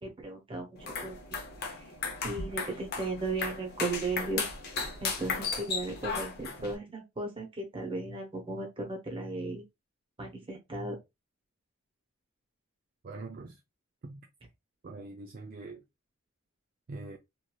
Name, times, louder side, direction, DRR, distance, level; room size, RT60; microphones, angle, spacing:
voice 1, 0.0-1.2 1.6-1.8 2.2-4.4 5.0-9.6 10.2-11.0, right 2 dB, 25° right, 0.9 m, -36 dB
sound 1, 0.8-6.8, left 4 dB, 50° left, 0.7 m, -36 dB
voice 2, 13.0-13.6 14.0-14.2 14.8-15.8 16.9-17.2, right 3 dB, 40° right, 0.3 m, -43 dB
3.0 x 2.6 x 2.3 m
head